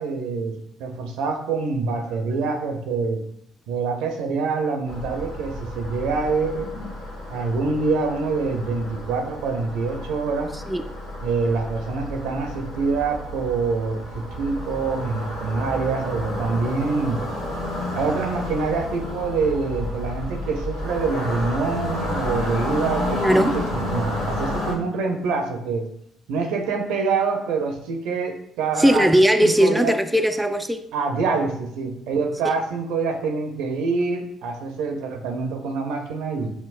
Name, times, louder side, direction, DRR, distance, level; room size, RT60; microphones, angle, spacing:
voice 1, 0.0-3.2 3.7-6.7 7.3-10.5 11.2-17.2 17.9-25.9 26.3-29.1 29.4-29.9 30.9-36.5, right 4 dB, 75° right, 0.6 m, -25 dB
sound 1, 4.9-24.7, left 1 dB, 85° left, 1.2 m, -31 dB
voice 2, 23.2-23.6 28.8-30.9, equal, 5° right, 0.3 m, -18 dB
5.9 x 2.1 x 2.5 m
hypercardioid pair, 55°, 0 cm